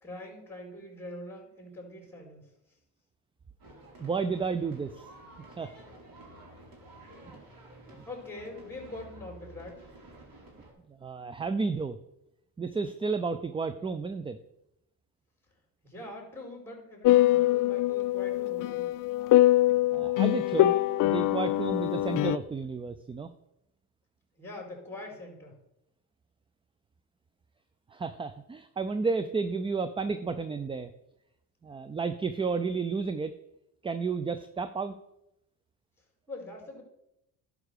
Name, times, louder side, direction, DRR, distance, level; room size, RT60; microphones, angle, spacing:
voice 1, 0.0-2.5 8.1-9.9 15.8-18.8 24.4-25.5 36.3-36.8, left 2 dB, 5° left, -1 dB, 4.3 m, -43 dB
sound 1, 3.6-10.7, right 1 dB, 50° right, 3.8 m, -51 dB
voice 2, 4.0-5.0 5.6-5.7 7.3-7.4 7.9-8.0 10.9-12.0 12.6-14.4 19.9-20.7 21.0-23.3 27.9-30.9 31.6-33.4 33.8-34.9, right 4 dB, 15° right, 11 dB, 0.4 m, -32 dB
sound 2, 17.0-22.4, left 15 dB, 50° left, 0.4 m, -24 dB
11.0 x 5.0 x 6.5 m, 0.85 s
supercardioid pair, 85°, 44 cm